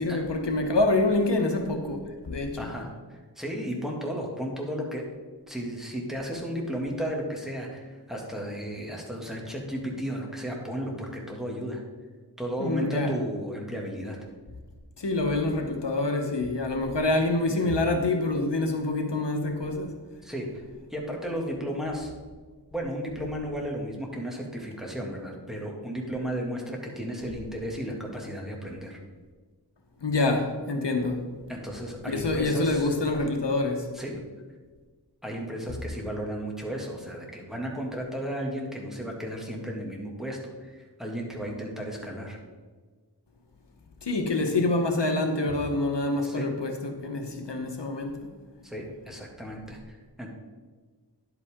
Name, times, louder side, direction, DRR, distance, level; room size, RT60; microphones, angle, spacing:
voice 1, 0.0-2.7 12.6-13.1 15.0-20.0 30.0-31.3 32.1-33.9 44.0-48.3, left 2 dB, 85° left, 4 dB, 1.1 m, -26 dB
voice 2, 2.6-5.0 5.5-11.8 12.4-14.2 20.2-20.5 20.9-22.2 22.7-29.0 31.5-32.9 33.9-34.1 35.2-42.4 46.2-46.4 48.6-50.3, equal, ahead, -1 dB, 2.1 m, -34 dB
10.5 x 8.2 x 3.6 m, 1.4 s
wide cardioid pair, 50°, 41 cm